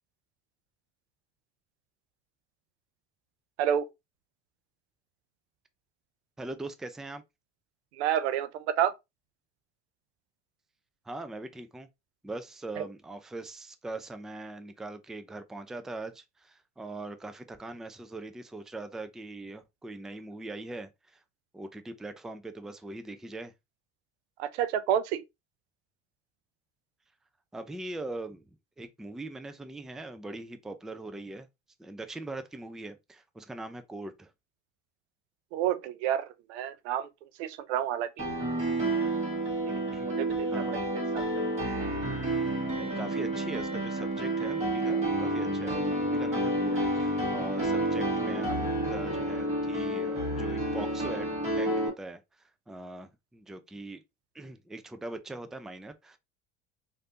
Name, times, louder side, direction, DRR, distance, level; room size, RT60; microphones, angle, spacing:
voice 1, 6.4-7.2 11.1-11.9 12.2-21.2 21.5-23.5 27.5-28.4 28.8-31.5 31.8-34.3 39.9-40.2 40.5-41.3 42.8-48.6 48.9-51.3 51.5-54.0 54.3-56.2, right 2 dB, ahead, 0.3 m, -41 dB
voice 2, 8.0-8.9 12.8-12.9 24.4-25.2 35.5-37.1 37.4-38.2 39.6-40.8 41.1-41.2, right 10 dB, 85° right, 0.5 m, -30 dB
Piano, 38.2-51.9, right 1 dB, 20° right, 1.5 m, -30 dB
3.2 x 2.6 x 2.8 m
hypercardioid pair, 80°, 33 cm